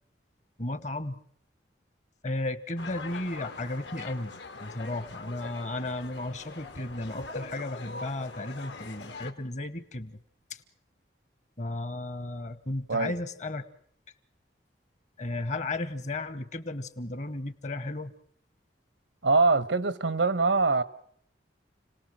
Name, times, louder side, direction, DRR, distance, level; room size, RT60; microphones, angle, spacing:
voice 1, 0.6-1.2 2.2-4.3 4.6-10.2 10.5-10.6 11.6-13.7 15.2-18.1, left 2 dB, 40° left, 1.2 m, -34 dB
sound 1, 2.8-9.3, left 3 dB, 70° left, 2.0 m, -43 dB
voice 2, 19.2-20.8, right 3 dB, 90° right, 1.2 m, -23 dB
29.5 x 18.5 x 7.6 m
head